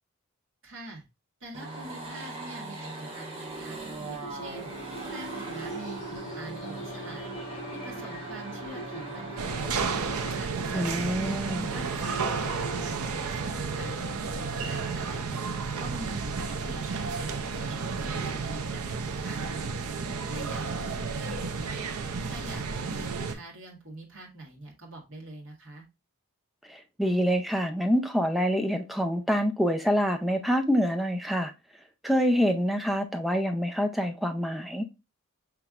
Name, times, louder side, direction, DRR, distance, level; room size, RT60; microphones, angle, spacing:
voice 1, 0.6-1.0 1.4-3.8 4.1-4.7 5.0-6.0 6.3-7.3 7.7-9.7 10.3-13.9 14.3-15.4 15.8-19.4 20.2-21.5 22.3-25.8, right 2 dB, 65° right, 1.7 m, -44 dB
sound 1, 1.5-10.4, right 2 dB, 30° right, 1.2 m, -40 dB
sound 2, 3.5-13.0, right 1 dB, 50° left, 2.0 m, -41 dB
sound 3, 9.4-23.4, right 4 dB, 80° right, 0.6 m, -32 dB
voice 2, 10.7-11.7 26.7-31.5 32.0-34.8, equal, ahead, 0.4 m, -26 dB
5.9 x 3.4 x 2.4 m
head